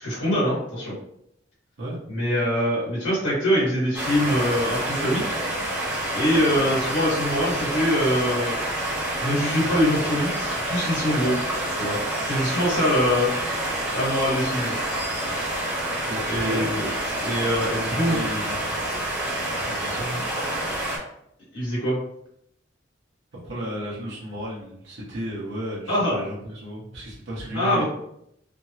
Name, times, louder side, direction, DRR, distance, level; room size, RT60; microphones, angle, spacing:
voice 1, 0.0-0.9 2.1-5.4 6.1-8.6 9.2-11.4 11.8-12.0 12.3-13.3 13.9-14.7 16.3-16.8 17.2-18.2 21.5-22.0 25.9-26.2 27.5-27.8, equal, 80° left, -9 dB, 1.5 m, -23 dB
sound 1, 3.9-21.0, right 1 dB, 10° right, 0.6 m, -28 dB
voice 2, 16.0-16.8 17.7-18.8 19.7-20.2 23.3-27.8, equal, 70° right, -7 dB, 0.9 m, -33 dB
3.4 x 2.0 x 2.7 m, 0.75 s
head